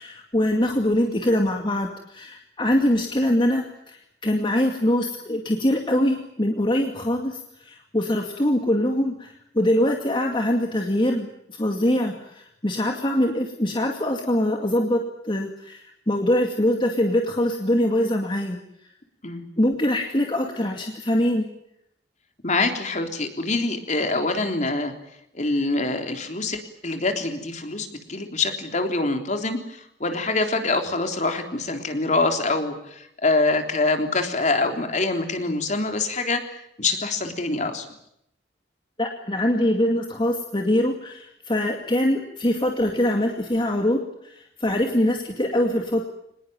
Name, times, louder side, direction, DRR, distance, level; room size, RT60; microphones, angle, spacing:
voice 1, 0.0-18.6 19.6-21.5 39.0-46.0, left 1 dB, 30° left, 3 dB, 2.3 m, -23 dB
voice 2, 22.4-24.9 25.3-29.6 30.0-37.9, left 3 dB, 45° left, 5 dB, 3.5 m, -25 dB
25.0 x 20.0 x 9.3 m, 0.76 s
head